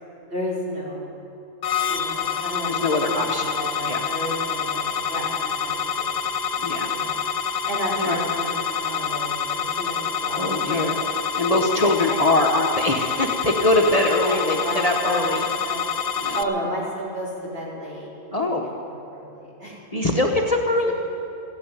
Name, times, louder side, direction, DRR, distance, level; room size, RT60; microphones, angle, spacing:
voice 1, 0.3-1.1 1.8-2.7 3.0-6.3 6.9-7.2 7.7-10.9 11.6-12.2 14.2-15.9 16.3-18.1 18.4-18.5 19.1-19.8 20.8-20.9, equal, 60° right, -6 dB, 4.2 m, -32 dB
sound 1, 1.6-16.4, left 6 dB, 80° left, 1.1 m, -27 dB
voice 2, 2.7-3.4 3.9-4.0 6.6-6.9 8.0-8.2 10.4-10.9 11.4-15.4 16.2-16.4 18.3-18.7 19.9-20.9, left 2 dB, 35° left, 1 dB, 1.1 m, -22 dB
15.0 x 10.0 x 9.1 m, 2.6 s
omnidirectional pair, 1.2 m